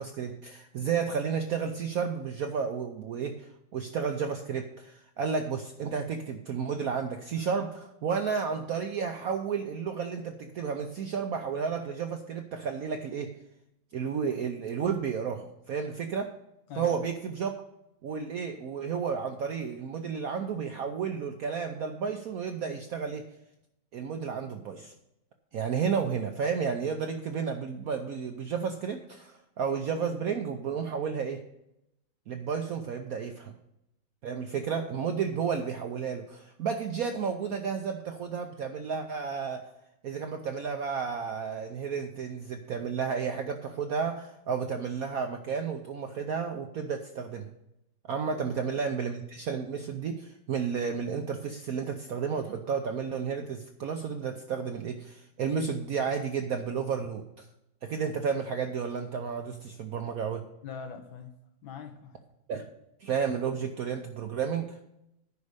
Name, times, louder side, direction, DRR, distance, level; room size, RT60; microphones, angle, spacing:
voice 1, 0.0-13.3 13.9-16.3 16.8-17.5 18.0-23.3 23.9-24.9 25.5-31.4 32.3-33.5 34.2-39.6 40.0-47.5 48.1-57.5 57.8-60.5 62.5-62.6 63.0-64.8, right 6 dB, 70° right, 5 dB, 0.8 m, -32 dB
voice 2, 60.6-61.3 61.6-62.2, left 6 dB, 75° left, 5 dB, 1.9 m, -42 dB
9.6 x 5.4 x 6.6 m, 0.83 s
omnidirectional pair, 2.2 m